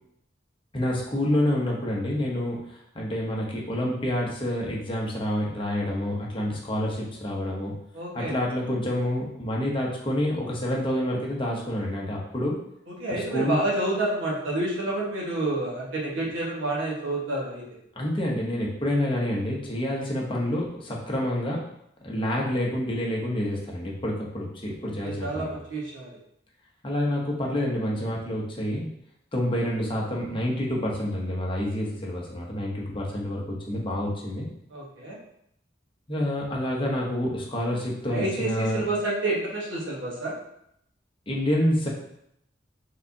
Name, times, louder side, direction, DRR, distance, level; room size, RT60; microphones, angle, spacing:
voice 1, 0.7-7.7 8.1-12.6 13.1-13.6 18.0-21.6 22.0-25.5 26.8-28.9 29.3-34.4 36.1-38.8 41.3-41.9, left 1 dB, 25° left, -2 dB, 0.9 m, -28 dB
voice 2, 7.9-8.3 13.0-17.7 24.8-26.2 34.7-35.2 38.1-40.3, right 2 dB, 75° right, -4 dB, 1.4 m, -29 dB
4.7 x 3.7 x 2.8 m, 0.75 s
head